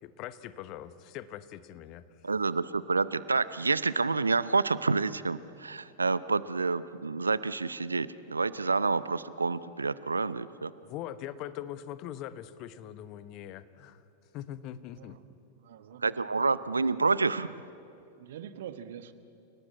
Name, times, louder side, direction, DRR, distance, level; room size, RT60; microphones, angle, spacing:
voice 1, 0.0-2.3 10.8-15.2, left 11 dB, 40° left, 14 dB, 1.0 m, -42 dB
voice 2, 2.2-10.7 16.0-17.6, right 4 dB, 80° right, 17 dB, 0.5 m, -28 dB
voice 3, 15.6-16.0 16.4-16.5 18.2-19.1, right 9 dB, 60° right, 12 dB, 1.2 m, -44 dB
29.5 x 18.5 x 8.5 m, 2.7 s
figure-of-eight pair, 90°, 0 cm